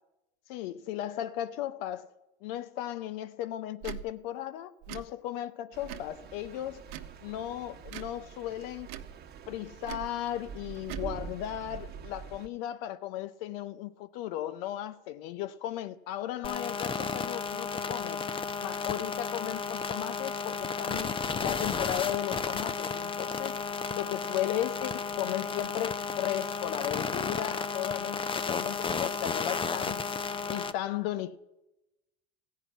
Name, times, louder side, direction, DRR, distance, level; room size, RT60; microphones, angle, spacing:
voice 1, 0.5-2.1 2.4-6.8 7.2-8.9 9.5-18.2 18.6-23.6 23.9-30.0 30.5-31.4, left 12 dB, 70° left, 0.6 m, -36 dB
Tick / Tick-tock, 3.8-4.0 4.8-5.1 5.8-6.1 6.8-7.2 7.8-8.1 8.8-9.1 9.8-10.1 10.8-11.1, right 12 dB, 65° right, 0.8 m, -41 dB
sound 1, 5.7-12.5, right 6 dB, 35° right, 1.2 m, -45 dB
sound 2, 16.4-30.7, left 5 dB, 15° left, 0.6 m, -33 dB
14.5 x 5.7 x 9.2 m
hypercardioid pair, 95°, 30 cm